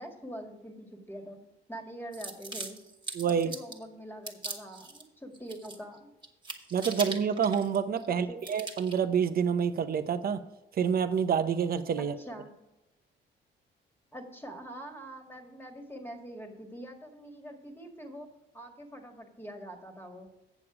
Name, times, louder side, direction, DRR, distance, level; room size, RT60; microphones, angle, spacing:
voice 1, 0.0-1.4 1.7-2.8 3.3-6.1 8.1-8.4 12.0-12.5 14.1-18.3 18.5-20.3, right 1 dB, 10° left, 3 dB, 1.7 m, -44 dB
sound 1, 2.1-3.8 4.3-5.0 5.3-6.0 6.2-8.1 8.4-9.0, right 3 dB, 25° right, 1.5 m, -40 dB
voice 2, 3.1-3.5 6.7-10.4 10.8-12.1, right 7 dB, 50° right, 11 dB, 0.7 m, -27 dB
8.3 x 7.0 x 4.8 m, 0.98 s
cardioid pair, 90°, 20 cm